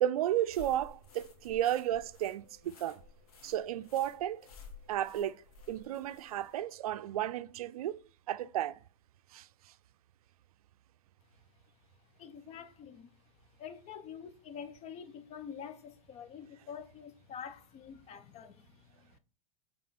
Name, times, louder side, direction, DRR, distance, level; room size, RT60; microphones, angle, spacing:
voice 1, 0.0-3.0 3.4-4.4 4.9-5.4 5.7-8.0 8.3-8.8 9.3-9.5, right 12 dB, 80° right, 0.4 m, -33 dB
sound 1, 0.5-6.6, left 4 dB, 85° left, 1.7 m, -54 dB
voice 2, 12.2-13.1 13.6-19.2, left 7 dB, 35° left, 0.8 m, -47 dB
6.6 x 3.7 x 4.2 m
hypercardioid pair, 110°, 19 cm